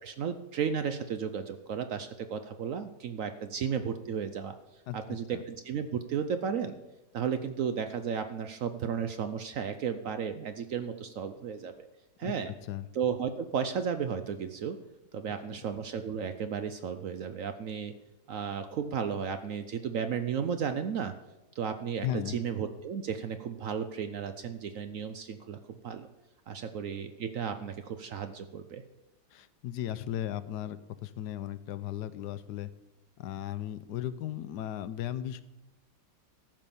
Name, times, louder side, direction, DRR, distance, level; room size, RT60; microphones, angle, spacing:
voice 1, 0.0-4.6 4.9-6.8 7.1-11.9 12.2-12.5 12.9-14.8 15.1-17.9 18.3-21.1 21.6-26.1 26.5-28.8, right 7 dB, 65° right, 9 dB, 0.8 m, -34 dB
voice 2, 4.9-5.4 12.2-12.9 15.5-15.6 22.0-22.4 29.3-32.7 33.2-35.4, left 12 dB, 75° left, 14 dB, 1.1 m, -36 dB
14.0 x 5.6 x 6.9 m, 0.96 s
omnidirectional pair, 1.9 m